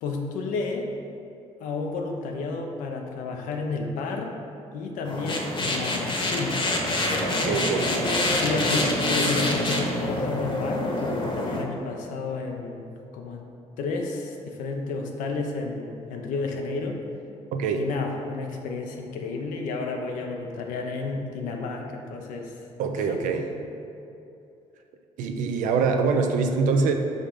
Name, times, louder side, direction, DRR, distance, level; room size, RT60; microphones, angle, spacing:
voice 1, 0.0-0.9 1.6-4.4 4.7-6.6 8.3-13.5 13.8-17.0 17.8-22.6 23.0-23.5, left 3 dB, 85° left, 2 dB, 0.7 m, -31 dB
sound 1, 5.0-11.6, left 1 dB, 40° left, 1.0 m, -26 dB
voice 2, 7.5-7.9 17.5-17.9 22.8-23.5 25.2-26.9, right 5 dB, 80° right, 5 dB, 0.5 m, -24 dB
5.2 x 3.7 x 5.3 m, 2.7 s
supercardioid pair, 65°, 13 cm